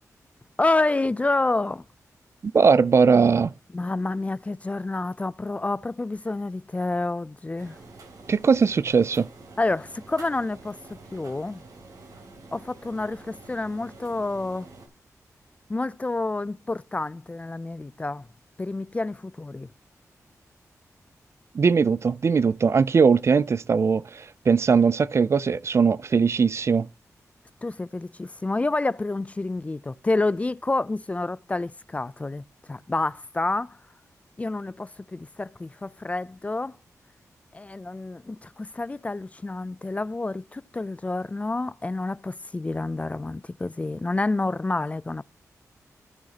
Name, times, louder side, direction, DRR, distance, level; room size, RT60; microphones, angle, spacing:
voice 1, 0.6-1.8 3.7-7.8 9.6-11.6 12.5-14.7 15.7-18.3 18.6-19.7 27.6-33.8 34.4-36.7 37.5-45.2, left 2 dB, 25° left, 0.4 m, -28 dB
voice 2, 2.4-3.5 8.3-9.3 21.5-26.9, right 5 dB, 50° right, 0.4 m, -20 dB
sound 1, 7.6-14.9, right 3 dB, 85° right, 3.1 m, -47 dB
15.5 x 6.3 x 2.8 m
wide cardioid pair, 85°, 6 cm